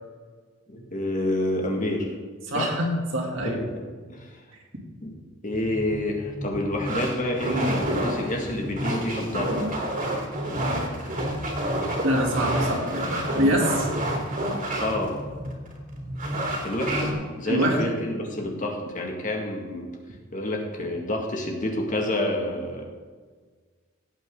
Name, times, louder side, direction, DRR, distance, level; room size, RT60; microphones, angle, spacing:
voice 1, 0.7-2.2 2.5-2.7 3.4-4.4 5.0-5.2 5.4-9.6 14.7-15.2 16.6-19.9 20.3-22.8, left 1 dB, 40° left, 1 dB, 2.2 m, -28 dB
voice 2, 2.5-3.6 12.0-13.9 17.5-17.9, equal, 70° right, -2 dB, 2.9 m, -25 dB
sound 1, 5.5-17.1, right 1 dB, 40° right, 3.0 m, -29 dB
17.0 x 8.9 x 4.0 m, 1.5 s
head